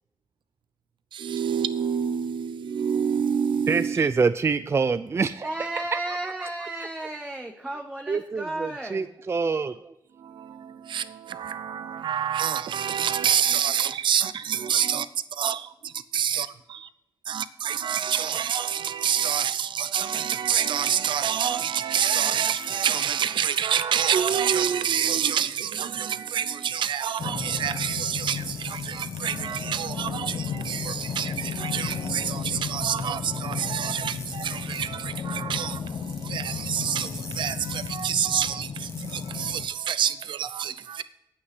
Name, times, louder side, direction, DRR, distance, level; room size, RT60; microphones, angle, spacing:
voice 1, 1.1-4.0 10.2-15.1 15.3-16.9 17.3-41.0, right 8 dB, 80° right, 0.7 m, -27 dB
voice 2, 3.7-5.5 6.1-6.3 6.7-6.9 8.1-9.8, right 5 dB, 35° right, 0.4 m, -26 dB
voice 3, 5.4-9.1, right 2 dB, 10° right, 1.0 m, -33 dB
sound 1, 22.0-23.4 24.5-26.2 27.4-29.7 30.6-32.8 34.0-35.0 35.9-38.1 38.9-40.1, left 3 dB, 35° left, 1.7 m, -46 dB
sound 2, 27.2-39.7, left 6 dB, 60° left, 0.9 m, -34 dB
9.8 x 8.6 x 6.1 m
wide cardioid pair, 120°, 8 cm